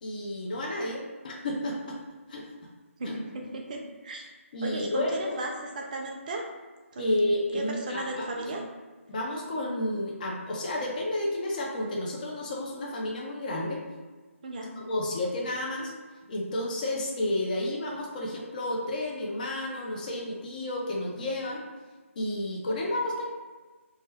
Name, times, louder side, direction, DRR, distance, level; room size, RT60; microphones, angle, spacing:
voice 1, 0.0-2.0 2.3-2.5 3.0-3.2 4.5-5.4 7.0-8.5 9.1-13.8 14.7-15.9 16.3-21.6 22.2-23.2, left 1 dB, 35° left, -2 dB, 0.4 m, -31 dB
voice 2, 3.3-4.2 4.6-6.4 6.9-7.1 7.5-8.6 14.4-14.7, right 2 dB, 35° right, 1 dB, 0.4 m, -35 dB
2.2 x 2.1 x 3.4 m, 1.4 s
figure-of-eight pair, 150°, 8 cm